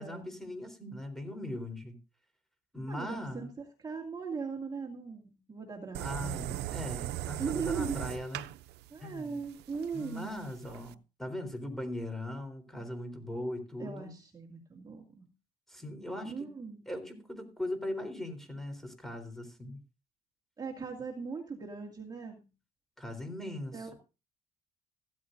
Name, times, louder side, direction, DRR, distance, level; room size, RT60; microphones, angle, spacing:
voice 1, 0.0-2.0 2.7-3.5 6.0-8.5 9.0-9.4 9.9-14.1 15.7-16.3 16.9-19.8 23.0-23.9, left 1 dB, ahead, 7 dB, 3.8 m, -39 dB
voice 2, 2.9-6.8 7.4-8.0 8.9-10.3 13.8-15.2 16.2-16.8 20.6-22.5 23.7-23.9, right 5 dB, 25° right, 0 dB, 2.3 m, -39 dB
sound 1, 5.9-10.9, right 14 dB, 80° right, 0.6 m, -39 dB
15.0 x 13.5 x 2.6 m, 0.32 s
cardioid pair, 110°, 17 cm